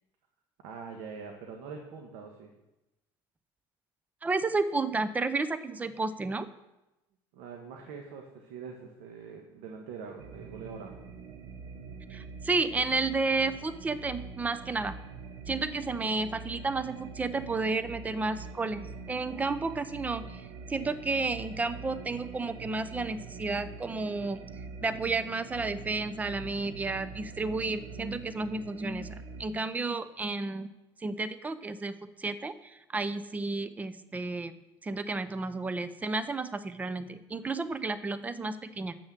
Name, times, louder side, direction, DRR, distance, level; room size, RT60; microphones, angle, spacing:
voice 1, 0.6-2.5 7.3-10.9, right 5 dB, 80° right, 2 dB, 1.4 m, -43 dB
voice 2, 4.2-6.5 12.1-15.0 15.5-24.4 24.8-30.7 31.0-39.0, right 3 dB, 15° right, 13 dB, 0.5 m, -32 dB
sound 1, 10.2-29.4, right 4 dB, 65° right, 1.0 m, -44 dB
8.6 x 6.3 x 7.4 m, 0.97 s
cardioid pair, 120°, 10 cm